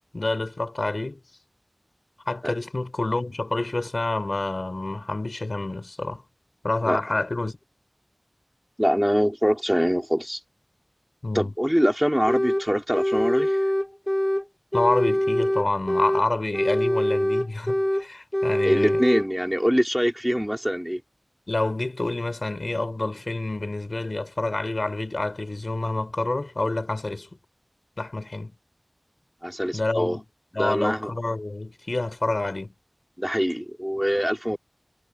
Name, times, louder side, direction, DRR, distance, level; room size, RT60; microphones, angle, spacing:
voice 1, 0.1-1.2 2.3-6.2 6.6-7.5 11.2-11.5 14.7-19.0 21.5-27.3 28.0-28.5 29.7-30.2 30.5-32.7, left 2 dB, 80° left, 5.0 m, -28 dB
voice 2, 8.8-10.4 11.3-13.6 18.6-21.0 29.4-30.2 30.6-31.1 33.2-34.6, equal, 5° right, 4.1 m, -24 dB
sound 1, 12.3-12.6 12.9-14.4 14.7-16.2 16.5-18.0 18.3-19.3, left 1 dB, 20° left, 1.7 m, -23 dB
wide cardioid pair, 45°, 0 cm